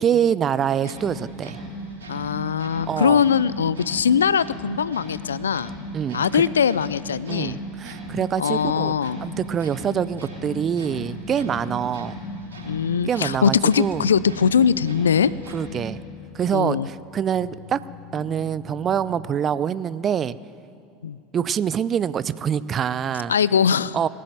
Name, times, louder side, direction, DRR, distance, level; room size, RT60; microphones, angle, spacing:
voice 1, 0.0-1.6 2.9-3.2 5.9-6.4 7.3-8.9 9.2-12.1 13.1-14.0 15.5-16.0 16.3-17.8 18.1-20.4 21.3-23.3 23.9-24.1, right 8 dB, 35° right, 17 dB, 0.5 m, -25 dB
sound 1, 0.8-16.0, equal, 80° right, 4.0 m, -36 dB
voice 2, 2.1-5.7 6.1-7.6 8.4-9.2 12.6-15.3 16.5-16.9 21.0-21.2 23.3-24.0, left 7 dB, 80° left, 19 dB, 0.3 m, -21 dB
sound 2, 9.3-19.4, left 10 dB, 55° left, 0.7 m, -44 dB
20.0 x 7.6 x 9.2 m, 2.6 s
figure-of-eight pair, 80°, 0 cm